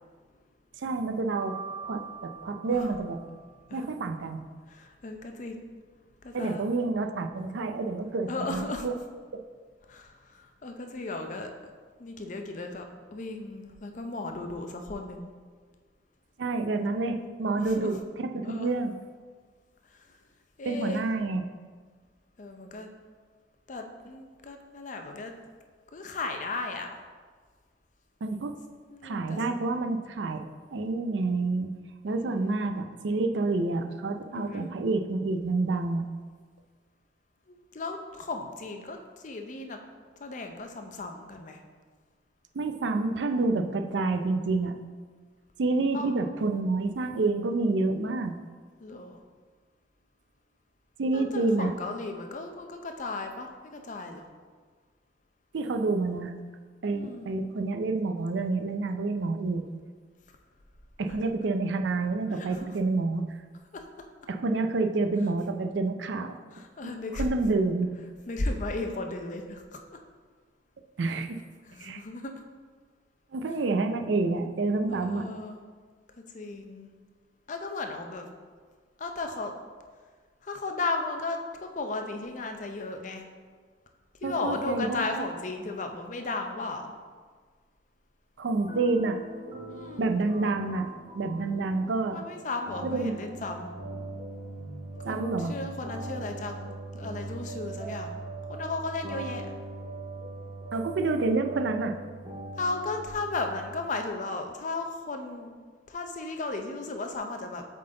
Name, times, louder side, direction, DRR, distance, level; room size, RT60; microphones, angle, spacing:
voice 1, 0.8-1.6 1.8-3.2 3.7-4.4 6.3-8.9 9.3-9.4 16.4-18.9 20.6-21.4 28.2-28.5 29.0-30.5 30.7-31.7 32.0-36.1 42.5-44.8 45.6-48.3 51.0-51.7 55.5-56.3 56.8-59.6 61.0-63.2 64.3-66.4 67.1-67.9 71.0-71.4 71.8-72.0 73.3-75.3 84.2-85.3 88.4-89.2 90.0-90.9 91.1-92.2 92.8-93.2 95.0-95.5 100.7-102.0, right 3 dB, 85° right, 6 dB, 0.5 m, -28 dB
Piano, 1.4-3.6, right 5 dB, 85° left, 0.9 m, -42 dB
voice 2, 4.6-5.6 6.2-6.6 8.3-8.9 9.9-11.5 12.0-12.9 13.1-15.3 17.6-18.0 18.4-18.7 19.9-20.2 20.6-21.1 22.4-22.9 23.7-25.3 25.9-27.0 28.9-29.4 32.1-32.6 34.3-34.7 37.5-39.8 40.2-41.6 45.9-46.1 48.8-49.2 51.1-54.3 56.9-57.3 61.1-61.2 62.3-62.7 63.7-63.8 66.5-67.2 68.3-70.0 71.7-72.4 74.9-75.6 76.3-76.9 77.5-78.3 79.0-79.5 80.4-83.3 84.2-86.9 89.7-90.1 92.1-93.7 95.0-96.7 96.9-98.1 98.5-99.5 102.6-105.5 105.9-107.7, left 3 dB, 45° left, 5 dB, 0.6 m, -35 dB
sound 1, 88.5-103.9, right 2 dB, 25° right, 1.0 m, -40 dB
7.6 x 3.8 x 3.8 m, 1.6 s
head